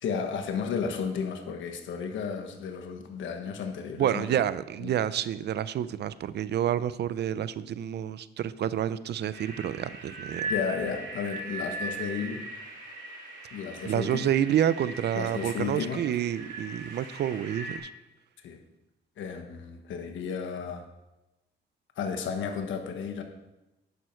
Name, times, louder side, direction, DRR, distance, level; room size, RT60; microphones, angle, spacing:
voice 1, 0.0-4.3 4.8-4.9 10.5-12.4 13.5-14.3 15.1-16.0 18.4-18.6 19.2-20.8 22.0-23.2, left 6 dB, 90° left, 5 dB, 1.3 m, -33 dB
voice 2, 4.0-10.5 13.8-17.9, right 10 dB, 60° right, 16 dB, 0.5 m, -29 dB
sound 1, 9.3-17.8, right 1 dB, 80° right, 3.0 m, -39 dB
11.0 x 9.3 x 4.5 m, 0.99 s
cardioid pair, 140°, 19 cm